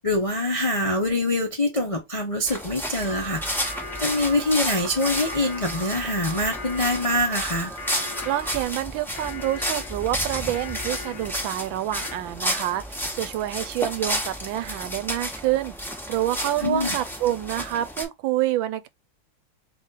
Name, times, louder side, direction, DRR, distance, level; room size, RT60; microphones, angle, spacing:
voice 1, 0.0-3.4 4.0-7.7 16.6-16.9, left 1 dB, 55° left, 0.3 m, -24 dB
sound 1, 2.5-18.0, equal, ahead, 0.9 m, -32 dB
Alarm, 3.1-8.6, right 6 dB, 35° right, 1.2 m, -40 dB
sound 2, 3.6-12.2, left 10 dB, 70° left, 0.9 m, -41 dB
voice 2, 8.2-12.8 13.1-15.7 16.1-18.9, right 13 dB, 80° right, 1.3 m, -27 dB
4.1 x 3.3 x 3.7 m
omnidirectional pair, 2.1 m